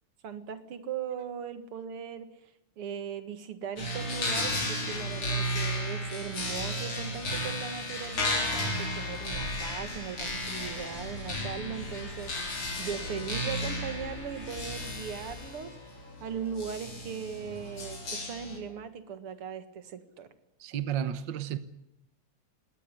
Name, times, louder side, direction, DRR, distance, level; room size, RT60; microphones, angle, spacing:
voice 1, 0.2-2.3 2.8-15.8 16.2-20.3, right 7 dB, 90° right, 2.7 m, -39 dB
sound 1, 3.8-18.6, left 1 dB, 75° left, 5.1 m, -34 dB
sound 2, 9.2-15.5, left 1 dB, 20° left, 5.2 m, -48 dB
voice 2, 20.6-21.6, right 10 dB, 60° right, 1.7 m, -32 dB
20.0 x 18.5 x 10.0 m
omnidirectional pair, 2.4 m